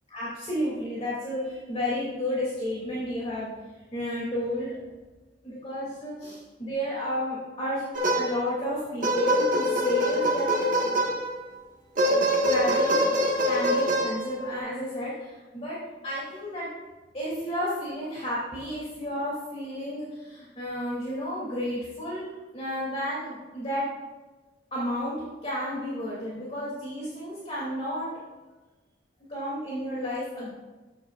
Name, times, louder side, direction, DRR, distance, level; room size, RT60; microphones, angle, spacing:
voice 1, 0.1-3.5 3.9-4.8 5.4-7.8 8.1-10.5 12.4-15.8 16.0-16.7 17.1-22.2 22.5-23.9 24.7-25.2 25.4-28.1 29.3-30.5, equal, 35° left, -7 dB, 2.7 m, -32 dB
sound 1, 7.9-8.6 9.0-11.4 12.0-14.6, equal, 45° right, 1.6 m, -24 dB
14.0 x 9.1 x 2.5 m, 1.2 s
head